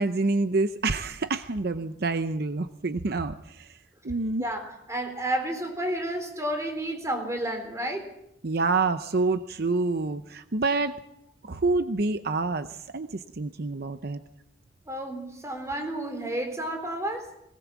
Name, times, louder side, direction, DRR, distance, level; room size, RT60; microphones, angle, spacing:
voice 1, 0.0-3.8 4.0-4.4 8.4-10.9 11.4-14.2, right 3 dB, 60° right, 10 dB, 0.7 m, -27 dB
voice 2, 4.4-8.1 14.9-17.3, right 1 dB, 15° right, 5 dB, 3.8 m, -31 dB
21.0 x 19.0 x 7.3 m, 0.83 s
head